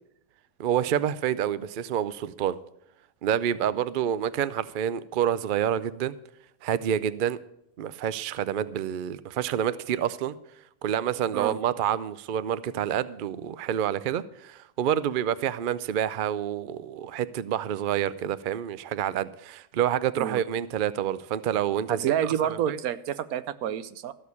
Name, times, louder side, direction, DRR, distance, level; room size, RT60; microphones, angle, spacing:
voice 1, 0.6-2.6 3.2-6.1 6.6-7.4 7.8-10.3 10.8-22.8, right 10 dB, 65° right, 16 dB, 0.5 m, -28 dB
voice 2, 21.9-24.1, right 10 dB, 85° right, 14 dB, 1.1 m, -28 dB
13.5 x 6.4 x 8.4 m, 0.77 s
omnidirectional pair, 1.5 m